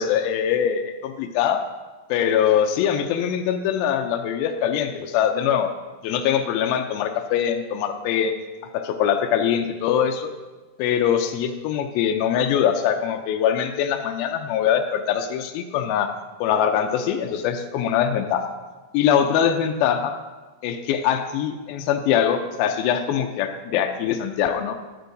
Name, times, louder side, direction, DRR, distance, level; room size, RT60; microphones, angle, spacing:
voice 1, 0.0-1.6 2.1-5.7 6.0-8.3 8.7-10.3 10.8-16.1 16.4-18.5 18.9-20.2 20.6-24.8, left 9 dB, 90° left, 5 dB, 2.4 m, -22 dB
12.5 x 11.0 x 2.6 m, 1.2 s
omnidirectional pair, 4.2 m